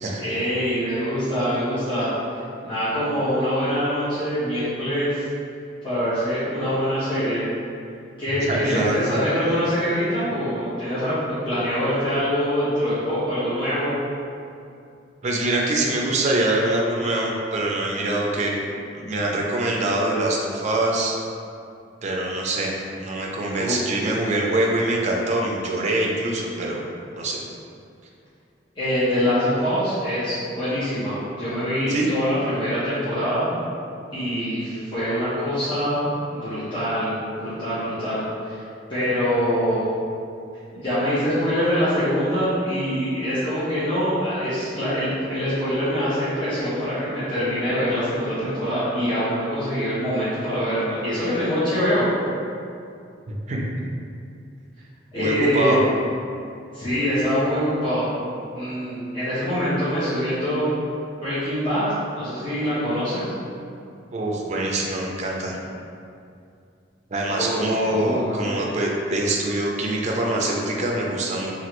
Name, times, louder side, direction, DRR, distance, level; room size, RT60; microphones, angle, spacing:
voice 1, 0.2-5.2 5.8-7.4 8.2-14.0 23.5-23.8 28.7-33.5 34.1-38.6 38.9-39.9 40.7-52.1 55.1-55.9 56.7-58.1 58.5-60.7 61.2-61.8 62.1-63.3 67.3-67.5 67.9-68.4, equal, 25° left, -15 dB, 0.8 m, -24 dB
voice 2, 8.4-9.2 15.2-18.6 18.9-21.1 22.0-26.8 27.1-27.4 31.9-32.1 53.3-53.6 55.2-55.8 64.1-65.6 67.1-71.6, right 2 dB, 40° right, -1 dB, 0.4 m, -24 dB
3.0 x 2.4 x 2.9 m, 2.5 s
head